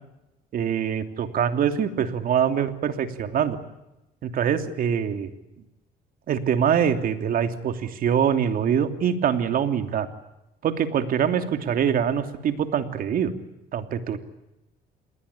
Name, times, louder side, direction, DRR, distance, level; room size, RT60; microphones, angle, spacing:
voice 1, 0.5-3.6 4.2-5.3 6.3-10.1 10.6-13.3 13.7-14.2, right 8 dB, 60° right, 8 dB, 3.0 m, -24 dB
28.0 x 21.5 x 8.6 m, 0.94 s
cardioid pair, 110°, 17 cm